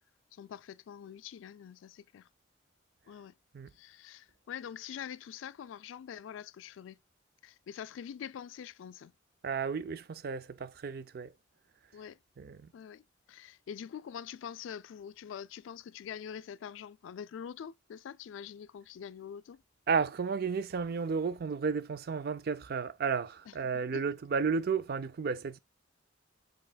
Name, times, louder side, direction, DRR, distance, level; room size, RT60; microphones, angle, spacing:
voice 1, 0.3-2.3 3.1-3.3 3.7-7.0 7.4-9.1 11.9-12.2 12.7-13.0 13.3-19.6 23.5-23.6 23.9-24.0, left 8 dB, 75° left, 0.3 m, -45 dB
voice 2, 9.4-11.3 12.4-12.7 19.9-25.6, right 5 dB, 50° right, 0.4 m, -33 dB
5.4 x 4.1 x 2.2 m
head